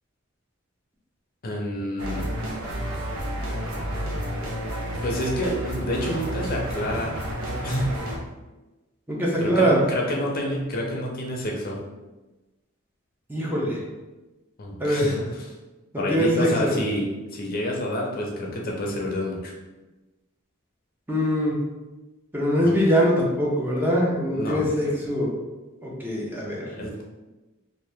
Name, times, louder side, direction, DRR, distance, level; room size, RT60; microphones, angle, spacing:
voice 1, 1.4-2.3 5.0-7.2 7.6-7.9 9.4-11.8 14.6-15.5 16.0-19.5 22.6-22.7 24.3-24.6 26.6-27.0, left 1 dB, 45° left, -1 dB, 0.6 m, -28 dB
sound 1, 2.0-8.2, right 1 dB, 80° right, 0.6 m, -30 dB
voice 2, 9.1-9.8 13.3-13.8 14.8-15.0 16.1-16.7 21.1-21.6 22.3-25.3 25.8-26.7, equal, 10° right, -4 dB, 0.6 m, -22 dB
2.8 x 2.5 x 3.4 m, 1.1 s
head